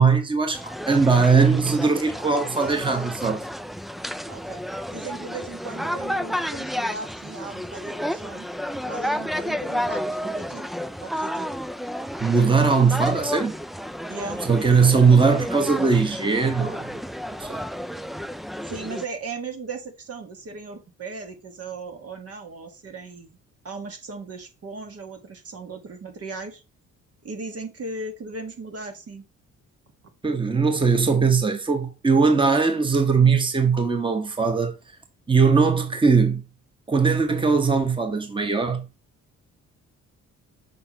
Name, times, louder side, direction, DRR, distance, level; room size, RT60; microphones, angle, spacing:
voice 1, 0.0-3.4 12.2-13.6 14.4-17.0 17.4-17.6 30.2-34.7 35.3-36.4 36.9-38.9, right 5 dB, 15° right, 1.3 m, -20 dB
sound 1, 0.5-19.1, equal, ahead, 0.3 m, -31 dB
voice 2, 4.3-4.6 4.9-8.5 8.9-10.7 11.0-11.5 14.1-15.0 18.6-23.4 23.6-26.6 27.2-29.2, right 3 dB, 50° right, 1.6 m, -37 dB
6.8 x 5.9 x 3.0 m
cardioid pair, 90°, 30 cm